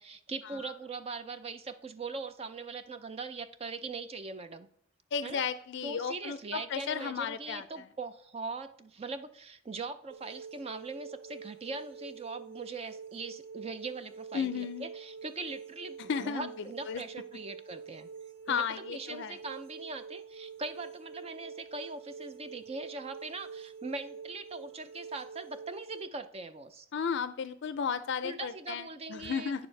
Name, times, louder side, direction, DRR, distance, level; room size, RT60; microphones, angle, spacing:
voice 1, 0.0-4.7 5.2-5.4 5.8-18.1 18.5-26.9 28.2-29.7, right 3 dB, 30° right, 10 dB, 0.5 m, -41 dB
voice 2, 5.1-7.8 14.3-14.8 16.0-16.5 16.9-17.0 18.5-19.4 26.9-29.7, left 6 dB, 60° left, 12 dB, 0.4 m, -34 dB
sound 1, 10.1-26.0, right 6 dB, 75° right, 1.0 m, -47 dB
9.2 x 7.2 x 3.2 m, 0.65 s
head